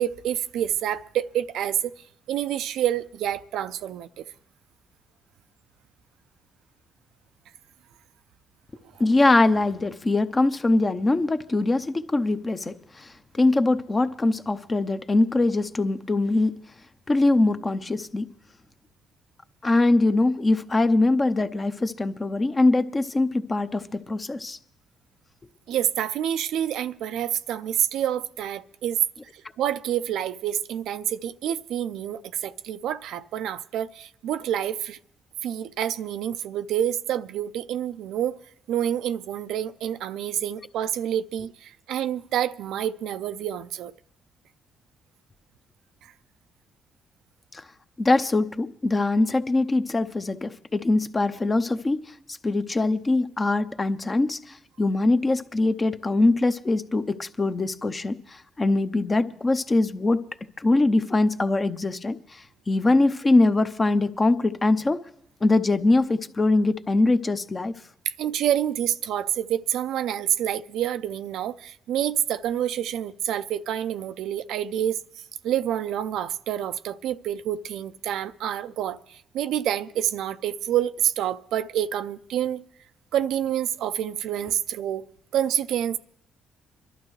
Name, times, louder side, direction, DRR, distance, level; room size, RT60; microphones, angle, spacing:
voice 1, 0.0-1.9 2.3-4.3 8.9-9.0 25.7-29.0 29.3-35.0 35.4-38.4 38.7-43.9 46.0-46.1 68.1-75.0 75.4-82.6 83.1-85.0 85.3-86.0, right 10 dB, 85° right, 0.4 m, -28 dB
voice 2, 9.0-13.1 13.3-16.6 17.1-18.3 19.6-24.6 47.5-47.6 48.0-52.0 52.4-60.3 60.6-65.0 65.4-67.7, left 2 dB, 25° left, 0.7 m, -22 dB
25.0 x 12.0 x 3.2 m
cardioid pair, 90°, 0 cm